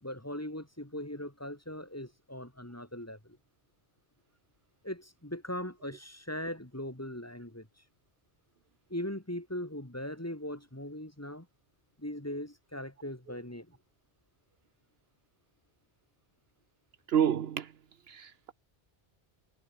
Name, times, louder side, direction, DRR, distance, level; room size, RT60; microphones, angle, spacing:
voice 1, 0.0-3.4 4.8-7.7 8.9-11.5 12.0-13.8, left 1 dB, 15° left, 2.3 m, -39 dB
voice 2, 17.1-17.7 18.1-18.5, right 9 dB, 75° right, 1.1 m, -29 dB
omnidirectional pair, 1.0 m